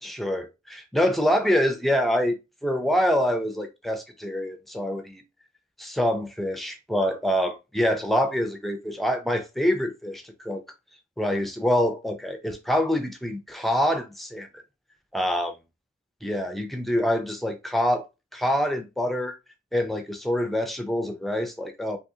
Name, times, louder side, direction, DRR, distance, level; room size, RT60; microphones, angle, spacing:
voice 1, 0.0-2.4 2.6-5.2 5.8-10.6 11.2-14.6 15.1-15.5 16.2-18.0 18.3-19.4 19.7-22.0, equal, ahead, 0.4 m, -25 dB
3.7 x 2.7 x 2.7 m
head